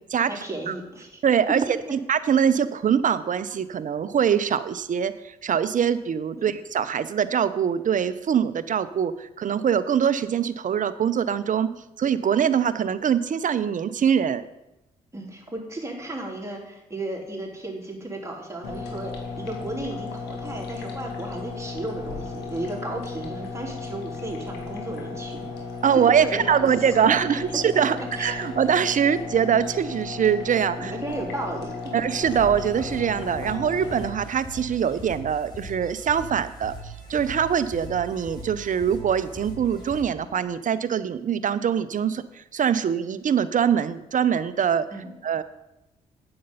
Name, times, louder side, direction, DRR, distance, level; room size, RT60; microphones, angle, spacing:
voice 1, 0.3-1.2 1.9-2.0 6.4-6.6 15.1-25.5 26.2-26.6 27.0-27.4 27.7-27.8 28.2-28.4 30.8-31.9 44.9-45.1, right 1 dB, 15° right, -2 dB, 3.5 m, -34 dB
voice 2, 1.2-1.6 1.9-14.4 25.8-30.9 31.9-44.9 45.2-45.4, right 8 dB, 50° right, 14 dB, 0.7 m, -23 dB
sound 1, 18.6-34.1, left 4 dB, 80° left, 1.6 m, -35 dB
sound 2, 32.2-40.0, right 1 dB, 25° left, 3.9 m, -40 dB
8.7 x 7.8 x 5.5 m, 0.92 s
hypercardioid pair, 50°, 17 cm